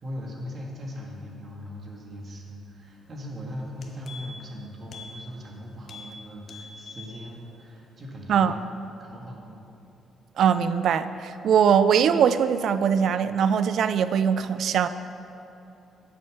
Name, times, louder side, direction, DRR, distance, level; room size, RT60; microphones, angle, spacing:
voice 1, 0.0-9.6, equal, 45° right, -1 dB, 1.8 m, -39 dB
sound 1, 3.2-3.3 3.6-4.5 4.9-5.1 5.4-5.5 5.8-6.1 6.4-7.1 7.5-7.6, left 5 dB, 55° left, 1.1 m, -44 dB
voice 2, 10.4-14.9, right 7 dB, 70° right, 13 dB, 0.4 m, -21 dB
8.9 x 6.5 x 6.6 m, 2.9 s
cardioid pair, 90°, 0 cm